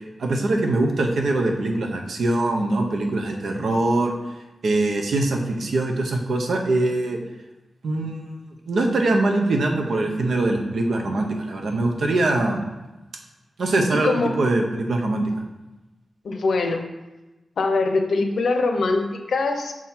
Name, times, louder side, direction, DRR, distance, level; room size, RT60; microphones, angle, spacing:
voice 1, 0.2-4.1 4.6-7.2 7.8-8.3 8.7-12.7 13.6-15.3, right 2 dB, 80° right, 2 dB, 0.8 m, -22 dB
voice 2, 13.9-14.4 16.2-16.8 17.6-19.7, left 3 dB, 80° left, 5 dB, 0.6 m, -23 dB
6.1 x 3.8 x 4.3 m, 1.1 s
wide cardioid pair, 95°, 0 cm